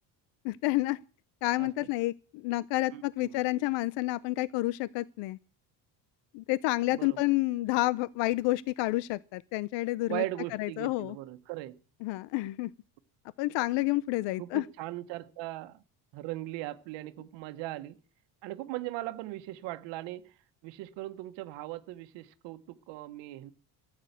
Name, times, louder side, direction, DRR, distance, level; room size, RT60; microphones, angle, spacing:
voice 1, 0.4-1.0 1.4-5.4 6.3-10.2 10.6-11.2 12.0-12.7 13.4-14.6, left 19 dB, 90° left, 0.7 m, -29 dB
voice 2, 2.9-3.4 6.9-7.2 10.1-11.8 14.4-15.8 16.1-18.0 18.4-20.3 20.6-23.5, right 17 dB, 85° right, 1.4 m, -39 dB
14.0 x 8.8 x 8.2 m
cardioid pair, 150°, 43 cm